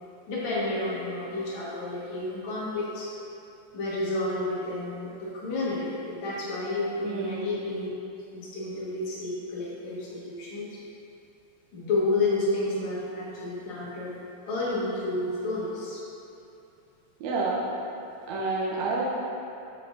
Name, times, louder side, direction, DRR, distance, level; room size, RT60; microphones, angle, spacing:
voice 1, 0.3-3.1 3.7-7.9 8.3-10.8 11.7-14.2 14.5-16.0, left 2 dB, 70° left, -7 dB, 2.8 m, -30 dB
voice 2, 7.0-7.6 17.2-17.7 18.3-19.0, right 3 dB, 75° right, -5 dB, 2.0 m, -29 dB
10.5 x 7.0 x 2.6 m, 2.8 s
omnidirectional pair, 3.4 m